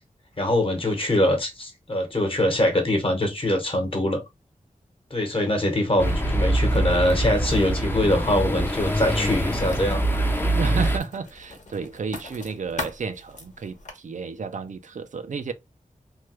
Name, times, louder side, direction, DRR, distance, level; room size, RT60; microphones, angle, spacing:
voice 1, 0.4-4.2 5.1-10.0, left 1 dB, 40° left, 1.1 m, -23 dB
Writing, 6.0-13.9, left 2 dB, 60° left, 1.0 m, -42 dB
sound 1, 6.0-11.0, right 1 dB, 15° left, 0.6 m, -24 dB
voice 2, 10.6-15.5, right 5 dB, 65° right, 0.4 m, -32 dB
3.2 x 2.3 x 2.9 m
wide cardioid pair, 80°, 14 cm